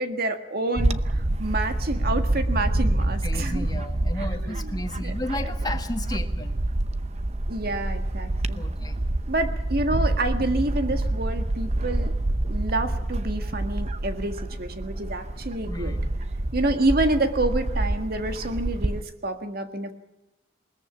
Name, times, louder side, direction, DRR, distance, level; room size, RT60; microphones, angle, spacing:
voice 1, 0.0-3.7 4.4-4.8 5.0-5.1 7.5-8.6 9.3-12.1 12.5-16.0 16.5-19.9, right 2 dB, 55° right, 7 dB, 1.8 m, -28 dB
Bird / Wind, 0.8-19.0, right 1 dB, 35° right, 0.8 m, -27 dB
voice 2, 3.2-6.6 8.5-9.0 15.7-16.1, left 1 dB, 20° left, 6 dB, 1.7 m, -33 dB
21.0 x 20.5 x 7.3 m, 0.96 s
head